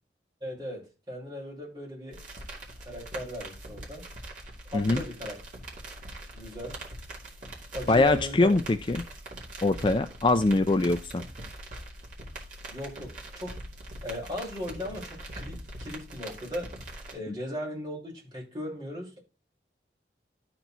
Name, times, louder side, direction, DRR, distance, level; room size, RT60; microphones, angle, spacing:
voice 1, 0.4-2.2 2.8-4.1 4.7-5.4 6.3-6.8 7.7-8.6 12.7-13.6 14.0-16.7 17.1-19.2, left 1 dB, 25° right, 4.8 m, -37 dB
sound 1, 2.1-17.1, right 1 dB, 45° right, 2.5 m, -42 dB
voice 2, 7.9-9.0 9.6-11.2, left 2 dB, 30° left, 0.4 m, -23 dB
12.0 x 4.5 x 4.0 m
head